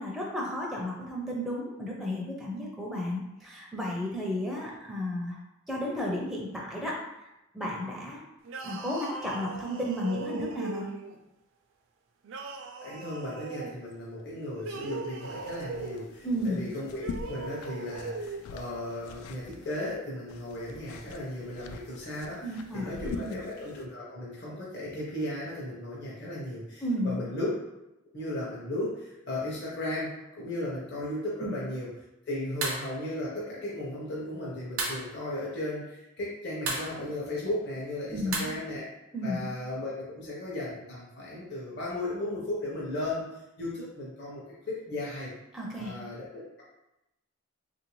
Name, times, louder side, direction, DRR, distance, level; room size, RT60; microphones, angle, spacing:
voice 1, 0.0-5.3 5.7-7.0 7.5-8.2 8.6-10.9 16.2-16.6 22.4-22.9 23.2-23.4 26.8-27.1 31.4-31.5 38.1-38.5 39.1-39.4 45.5-45.9, left 1 dB, ahead, -4 dB, 0.4 m, -33 dB
sound 1, 8.4-11.2 12.2-13.8 14.5-16.1 16.9-18.4, right 4 dB, 60° right, 0.4 m, -39 dB
voice 2, 12.8-27.5 28.1-31.9 32.3-38.9 39.2-43.3 43.6-45.3 45.8-46.6, left 1 dB, 55° left, -6 dB, 0.7 m, -36 dB
sound 2, 15.2-19.9 20.3-23.9, left 4 dB, 85° left, 0.3 m, -44 dB
sound 3, 32.6-32.9 34.8-35.1 36.6-37.0 38.3-38.4, right 3 dB, 85° right, 0.7 m, -31 dB
3.3 x 2.5 x 3.0 m, 0.91 s
head